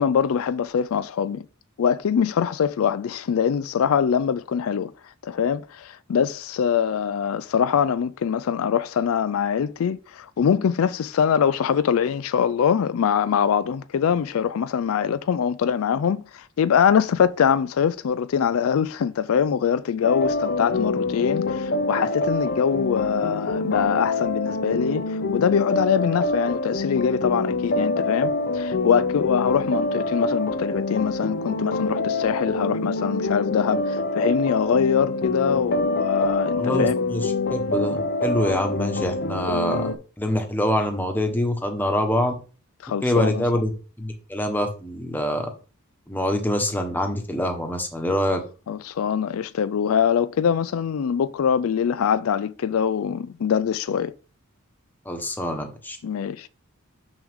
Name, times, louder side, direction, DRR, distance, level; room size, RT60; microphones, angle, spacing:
voice 1, 0.0-1.4 1.8-4.9 5.2-37.0 42.8-43.4 48.7-54.1 56.0-56.5, left 7 dB, 75° left, 0.4 m, -23 dB
sound 1, 20.0-40.0, left 2 dB, 50° left, 0.7 m, -26 dB
voice 2, 36.6-42.3 43.0-43.7 44.0-45.5 46.1-48.4 55.0-56.0, left 1 dB, 10° left, 1.2 m, -25 dB
6.4 x 6.2 x 3.6 m
head